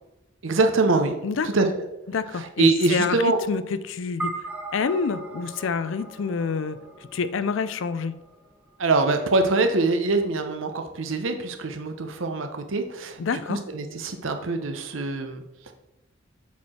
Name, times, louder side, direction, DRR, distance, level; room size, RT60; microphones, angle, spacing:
voice 1, 0.4-1.2 1.4-1.8 2.3-3.4 8.8-15.7, right 3 dB, 70° right, 7 dB, 0.8 m, -24 dB
voice 2, 2.1-3.2 3.5-4.4 4.7-6.8 7.1-8.2 13.2-13.6, left 5 dB, 65° left, 14 dB, 0.4 m, -27 dB
sound 1, 4.2-8.8, right 2 dB, 5° right, 1.0 m, -38 dB
7.2 x 4.6 x 4.3 m, 0.94 s
head